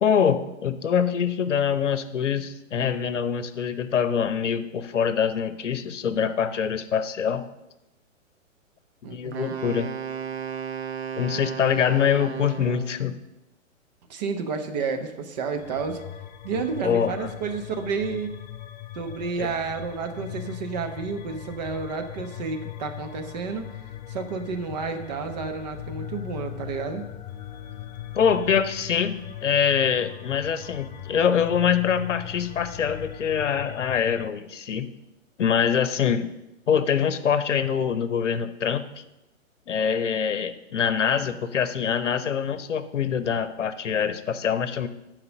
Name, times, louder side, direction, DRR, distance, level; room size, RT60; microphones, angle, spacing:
voice 1, 0.0-7.5 9.0-9.9 11.2-13.2 16.8-17.3 19.4-19.5 28.1-34.9 35.4-36.3 36.7-38.8 39.7-44.9, left 7 dB, 60° left, 12 dB, 0.9 m, -24 dB
voice 2, 9.0-9.6 14.1-16.0 16.4-18.3 18.9-23.7 24.1-27.0, right 5 dB, 30° right, 6 dB, 0.9 m, -31 dB
Wind instrument woodwind instrument, 9.3-13.0, right 7 dB, 55° right, 1.1 m, -34 dB
sound 1, 15.6-34.3, left 12 dB, 35° left, 0.5 m, -40 dB
11.0 x 5.0 x 6.5 m, 0.97 s
figure-of-eight pair, 115°, 40 cm